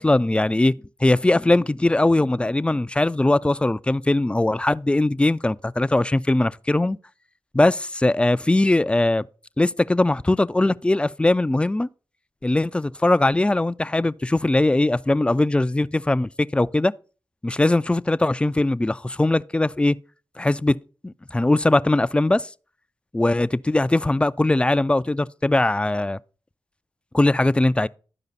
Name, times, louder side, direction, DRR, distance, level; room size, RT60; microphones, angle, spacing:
voice 1, 0.0-7.0 7.5-9.2 9.6-11.9 12.4-16.9 17.4-20.0 20.4-20.8 21.0-22.5 23.1-26.2 27.1-27.9, left 2 dB, 15° left, 0.3 m, -20 dB
12.0 x 4.9 x 4.1 m
cardioid pair, 50°, 8 cm